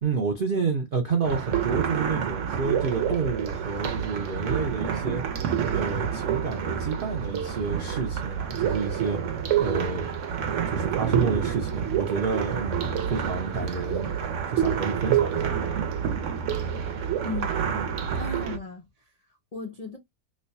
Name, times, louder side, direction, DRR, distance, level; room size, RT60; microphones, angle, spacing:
voice 1, 0.0-5.2 5.7-9.2 9.6-10.1 10.7-14.1 14.5-15.6, right 5 dB, 80° right, 0.4 m, -29 dB
sound 1, 1.2-18.6, right 8 dB, 60° right, 0.8 m, -28 dB
voice 2, 17.2-17.6 18.2-19.2 19.5-20.0, left 3 dB, 80° left, 0.3 m, -36 dB
3.1 x 2.2 x 4.0 m
omnidirectional pair, 1.8 m